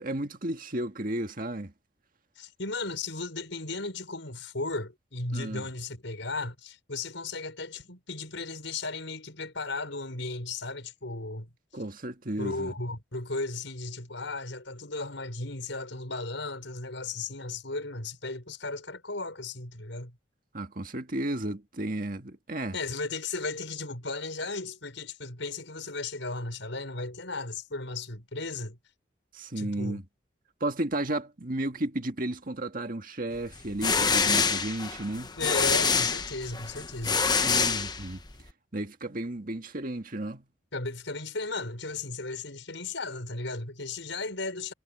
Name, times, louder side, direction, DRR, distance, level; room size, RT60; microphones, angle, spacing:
voice 1, 0.0-1.7 5.3-5.7 11.7-12.7 20.5-22.8 29.3-30.0 30.6-35.3 37.4-38.2 38.7-40.5, right 1 dB, 45° right, 1.8 m, -33 dB
voice 2, 2.4-11.5 12.4-20.2 22.7-28.8 29.6-30.0 35.4-37.2 40.7-44.7, left 3 dB, 75° left, 5.7 m, -35 dB
sound 1, 33.5-38.4, left 5 dB, 20° left, 1.0 m, -26 dB
head